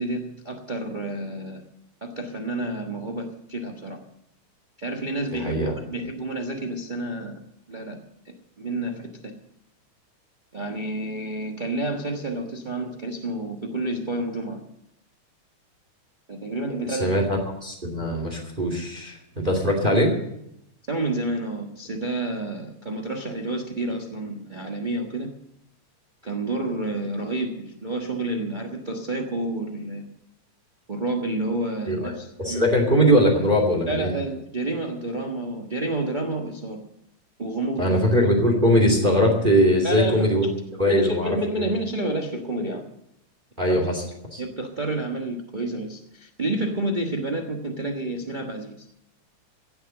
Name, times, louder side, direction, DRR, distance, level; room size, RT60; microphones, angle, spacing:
voice 1, 0.0-1.6 2.0-4.0 4.8-7.4 7.7-8.0 8.6-9.4 10.5-14.6 16.3-17.2 20.9-25.3 26.2-30.0 30.9-32.7 33.9-36.8 37.4-38.0 39.8-40.4 40.8-42.8 43.7-43.8 44.4-48.9, right 2 dB, 60° right, 1 dB, 0.4 m, -29 dB
voice 2, 5.4-5.7 16.9-20.1 31.9-32.1 32.4-34.1 37.8-40.4 40.8-41.6 43.6-44.0 44.3-44.4, equal, 15° right, 2 dB, 2.6 m, -21 dB
16.5 x 7.9 x 7.8 m, 0.78 s
omnidirectional pair, 3.3 m